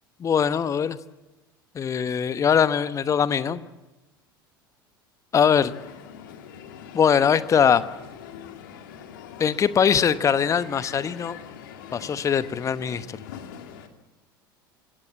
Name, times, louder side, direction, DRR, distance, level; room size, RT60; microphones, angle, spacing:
voice 1, 0.2-1.0 1.7-3.6 5.3-5.7 6.9-7.8 9.4-11.4 11.9-13.1, left 7 dB, 25° left, 14 dB, 1.1 m, -21 dB
Crowd, 5.6-13.9, left 8 dB, 65° left, 2.4 m, -43 dB
26.0 x 17.0 x 8.4 m, 1.1 s
figure-of-eight pair, 75°, 12 cm